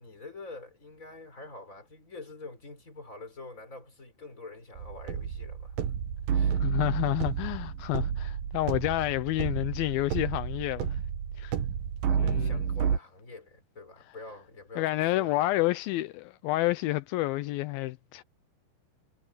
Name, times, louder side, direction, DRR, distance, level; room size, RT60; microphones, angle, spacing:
voice 1, 0.0-5.9 6.3-6.6 12.1-15.7, left 3 dB, 20° left, 4.9 m, -46 dB
sound 1, 4.8-13.0, right 7 dB, 65° right, 2.8 m, -30 dB
voice 2, 6.6-11.0 11.4-11.6 12.2-12.6 14.8-18.2, left 18 dB, 85° left, 2.1 m, -29 dB
omnidirectional pair, 5.1 m